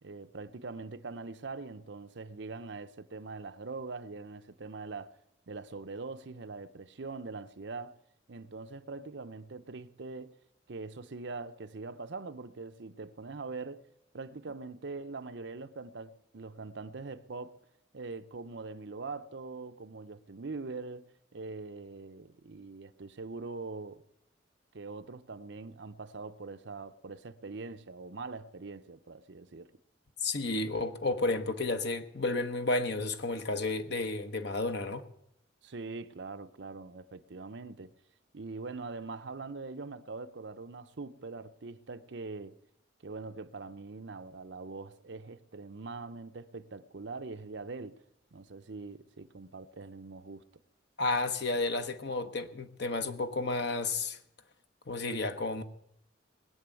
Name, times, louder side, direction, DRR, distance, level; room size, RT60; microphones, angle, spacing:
voice 1, 0.0-5.1 5.5-8.0 8.3-10.4 10.7-13.8 14.1-17.6 17.9-24.0 24.7-29.7 35.6-37.9 38.3-42.6 43.0-48.0 48.3-50.4, right 3 dB, 65° right, 0.7 m, -43 dB
voice 2, 30.2-35.0 51.0-54.2 54.9-55.6, left 2 dB, 60° left, 1.2 m, -32 dB
21.0 x 7.0 x 9.1 m
head